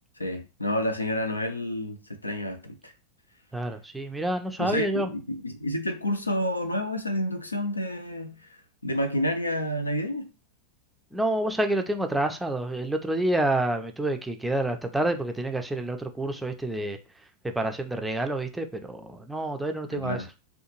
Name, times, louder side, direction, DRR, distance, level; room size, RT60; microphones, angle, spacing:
voice 1, 0.2-2.9 4.6-10.3 19.9-20.3, left 1 dB, 80° left, 0.4 m, -30 dB
voice 2, 3.5-5.1 11.1-17.0 17.5-20.2, right 1 dB, 5° right, 0.4 m, -28 dB
2.5 x 2.2 x 2.9 m
figure-of-eight pair, 90°, 0 cm